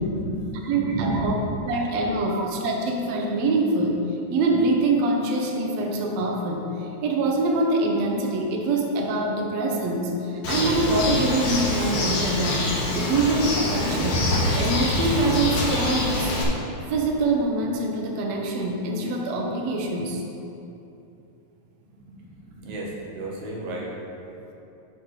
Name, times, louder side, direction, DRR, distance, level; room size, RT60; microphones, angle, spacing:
voice 1, 0.0-1.5 2.3-2.5 21.8-23.9, right 1 dB, 85° right, -3 dB, 3.1 m, -32 dB
voice 2, 0.6-1.3 1.7-2.4 2.6-4.0 4.3-12.6 12.9-14.2 14.6-16.5 16.9-20.2, right 2 dB, 70° right, 1 dB, 1.8 m, -24 dB
Bird, 10.4-16.4, left 1 dB, 60° left, 2.1 m, -25 dB
10.5 x 4.9 x 4.8 m, 2.8 s
omnidirectional pair, 3.9 m